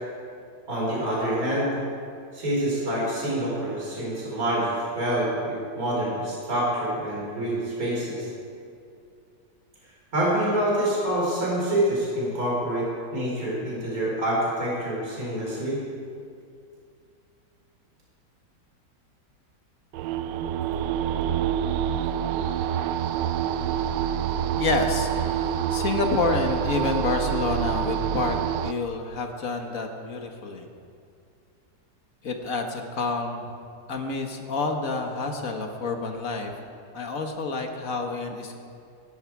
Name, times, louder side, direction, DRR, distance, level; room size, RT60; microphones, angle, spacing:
voice 1, 0.7-1.7 2.3-8.3 10.1-15.8, right 1 dB, 50° right, -5 dB, 4.7 m, -26 dB
sound 1, 19.9-28.7, right 9 dB, 90° right, 1.3 m, -27 dB
voice 2, 24.6-30.7 32.2-33.5 33.9-36.5 36.9-38.6, left 3 dB, 50° left, 3 dB, 1.8 m, -28 dB
23.5 x 11.5 x 4.8 m, 2.4 s
omnidirectional pair, 1.9 m